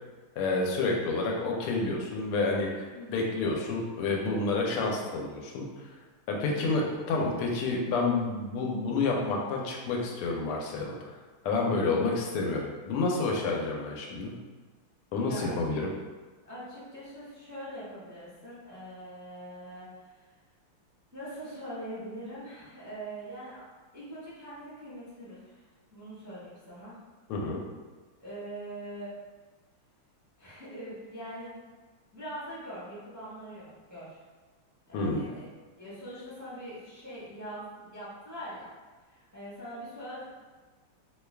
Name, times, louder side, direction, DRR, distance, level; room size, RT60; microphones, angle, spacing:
voice 1, 0.4-2.9 3.1-5.6 6.3-11.1 11.4-14.3 15.1-15.9 27.3-27.6 34.9-35.3, left 3 dB, 85° left, -1 dB, 1.6 m, -29 dB
voice 2, 2.9-3.3 6.4-6.6 15.2-15.8 16.4-20.2 21.1-23.7 23.9-25.6 25.9-27.0 28.2-29.1 30.4-31.6 32.1-34.2 34.9-35.5 35.8-38.7 39.1-40.3, right 1 dB, 15° right, -11 dB, 0.6 m, -42 dB
3.6 x 2.2 x 3.3 m, 1.3 s
omnidirectional pair, 2.4 m